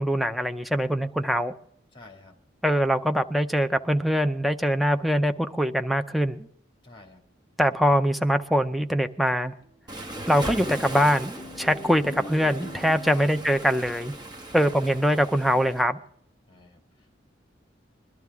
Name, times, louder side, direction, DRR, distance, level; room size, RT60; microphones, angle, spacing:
voice 1, 0.0-1.5 2.6-6.5 7.6-9.5 10.3-14.1 14.5-16.0, equal, ahead, 7 dB, 0.6 m, -23 dB
voice 2, 1.9-2.4 6.8-7.2 13.1-13.4 14.5-14.8 16.5-17.2, left 2 dB, 25° left, 4 dB, 2.3 m, -50 dB
sound 1, 9.2-14.8, left 2 dB, 50° left, 1.2 m, -45 dB
Waves surf, 9.9-15.8, right 1 dB, 20° right, 1.3 m, -38 dB
21.5 x 12.0 x 3.6 m, 0.64 s
head